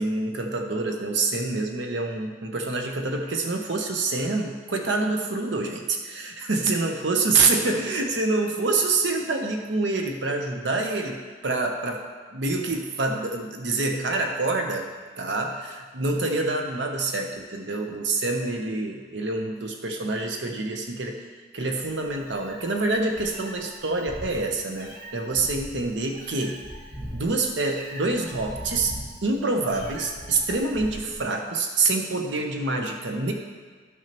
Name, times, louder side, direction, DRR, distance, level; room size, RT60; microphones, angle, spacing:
voice 1, 0.0-12.0 12.3-14.9 15.2-21.2 21.5-26.6 27.1-29.0 29.2-33.3, right 3 dB, 70° right, 3 dB, 0.8 m, -26 dB
Meow, 21.8-31.2, equal, 45° right, 1.4 m, -40 dB
12.0 x 6.0 x 2.9 m, 1.5 s
head